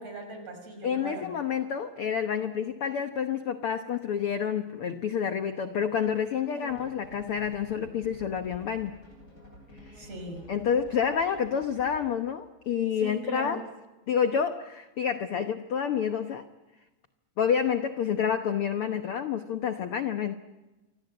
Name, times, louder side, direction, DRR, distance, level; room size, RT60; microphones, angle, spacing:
voice 1, 0.0-1.3 6.5-6.7 10.0-10.5 13.0-13.6, right 1 dB, 45° right, 6 dB, 7.0 m, -39 dB
voice 2, 0.8-9.0 9.8-10.1 10.5-13.6 14.1-16.4 17.4-20.3, left 7 dB, 60° left, 8 dB, 1.5 m, -29 dB
sound 1, 6.7-12.2, equal, 30° left, 8.4 m, -50 dB
28.5 x 25.5 x 7.8 m, 1.1 s
omnidirectional pair, 3.8 m